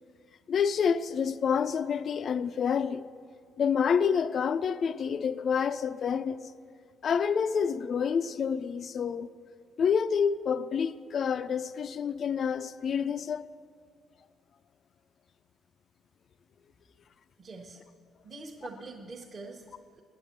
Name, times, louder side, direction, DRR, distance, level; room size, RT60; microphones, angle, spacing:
voice 1, 0.5-3.1 3.6-6.4 7.0-9.3 9.8-13.4, left 7 dB, 45° left, 0.3 m, -28 dB
voice 2, 17.4-17.8 18.2-20.0, right 3 dB, 30° right, 0.9 m, -44 dB
9.6 x 8.7 x 7.2 m
cardioid pair, 150°, 0 cm